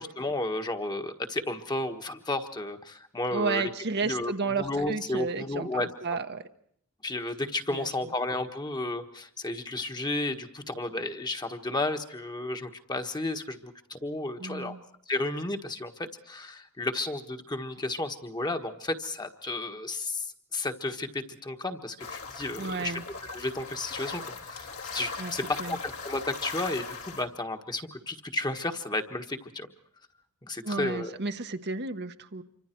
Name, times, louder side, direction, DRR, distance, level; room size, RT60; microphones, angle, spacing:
voice 1, 0.0-3.7 4.0-4.3 4.6-5.9 7.0-14.7 15.1-29.7 30.5-31.2, left 2 dB, 20° left, 5 dB, 1.4 m, -33 dB
voice 2, 3.3-6.5 7.7-8.1 14.4-14.8 22.6-23.0 25.2-25.3 25.6-25.8 30.6-32.4, right 4 dB, 50° right, 7 dB, 1.1 m, -32 dB
sound 1, 22.0-27.2, left 4 dB, 75° left, 3.1 m, -39 dB
27.0 x 25.0 x 4.5 m, 0.65 s
head